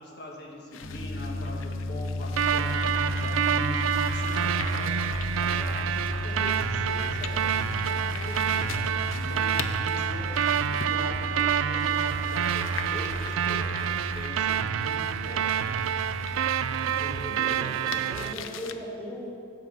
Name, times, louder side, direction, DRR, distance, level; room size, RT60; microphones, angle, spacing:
voice 1, 0.0-15.8, left 1 dB, 55° left, -1 dB, 1.5 m, -42 dB
sound 1, 0.7-18.7, left 7 dB, 85° left, 0.5 m, -43 dB
sound 2, 0.8-17.2, left 2 dB, 30° left, 1.0 m, -34 dB
sound 3, 2.4-18.3, right 9 dB, 90° right, 0.3 m, -28 dB
voice 2, 16.8-19.3, equal, 10° left, -7 dB, 2.7 m, -38 dB
8.2 x 6.7 x 7.6 m, 2.4 s
head